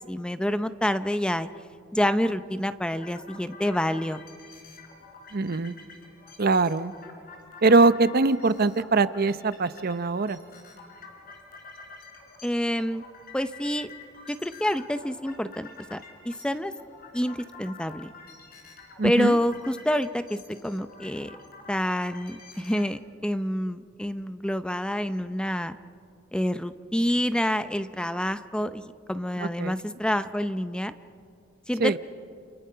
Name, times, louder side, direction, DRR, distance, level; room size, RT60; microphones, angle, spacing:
voice 1, 0.1-1.5 1.9-4.2 12.4-13.0 13.3-13.9 14.3-16.7 17.1-18.1 19.0-20.4 20.6-21.4 21.7-25.8 26.3-30.9 31.7-32.0, equal, 5° left, 11 dB, 0.6 m, -27 dB
sound 1, 2.9-22.9, left 4 dB, 50° left, 4.3 m, -48 dB
voice 2, 5.3-5.8 6.4-6.9 7.6-10.4 19.0-19.4 29.4-29.7 31.8-32.0, right 3 dB, 50° right, 14 dB, 0.7 m, -22 dB
29.5 x 29.5 x 5.7 m, 2.2 s
head